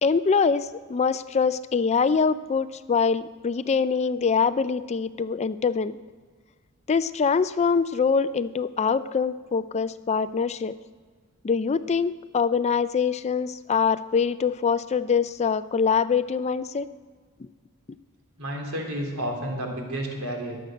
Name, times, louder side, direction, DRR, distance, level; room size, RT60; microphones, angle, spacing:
voice 1, 0.0-6.0 6.9-10.7 11.4-16.9 17.4-17.5, left 5 dB, 30° left, 14 dB, 0.4 m, -24 dB
voice 2, 18.4-20.6, right 1 dB, 70° right, 0 dB, 3.5 m, -31 dB
22.0 x 7.9 x 6.3 m, 1.5 s
head